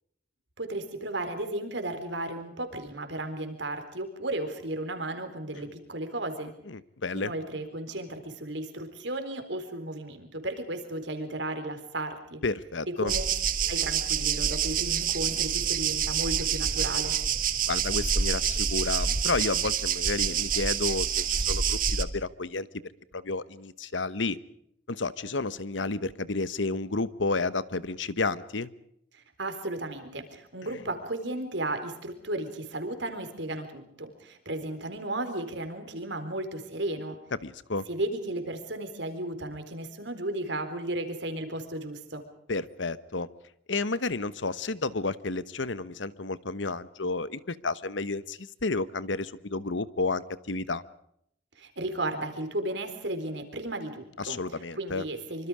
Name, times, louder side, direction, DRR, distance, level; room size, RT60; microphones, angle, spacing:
voice 1, 0.6-6.5 7.1-12.4 13.0-13.3 13.7-17.2 29.1-37.2 37.9-42.2 51.6-54.4 54.8-55.5, right 1 dB, 75° right, 8 dB, 4.1 m, -34 dB
voice 2, 6.7-7.3 12.4-13.1 17.7-22.7 23.1-24.4 24.9-28.7 37.4-37.9 42.5-43.3 43.7-50.8 54.2-55.0, left 3 dB, 80° left, 16 dB, 1.1 m, -31 dB
sound 1, 13.1-22.0, right 7 dB, 45° right, 1.5 m, -27 dB
25.5 x 25.5 x 5.0 m, 0.72 s
head